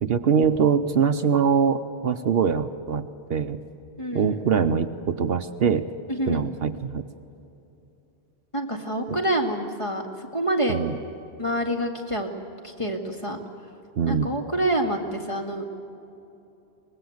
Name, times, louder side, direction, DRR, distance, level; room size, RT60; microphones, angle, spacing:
voice 1, 0.0-3.6 4.1-5.8 6.3-7.0 10.7-10.9 14.0-14.3, right 6 dB, 65° right, 9 dB, 1.0 m, -23 dB
voice 2, 4.0-4.4 6.1-6.4 8.5-10.8 11.4-12.3 12.6-13.4 14.1-15.6, right 1 dB, 30° left, 1 dB, 2.2 m, -27 dB
24.0 x 20.0 x 7.9 m, 2.9 s
omnidirectional pair, 1.1 m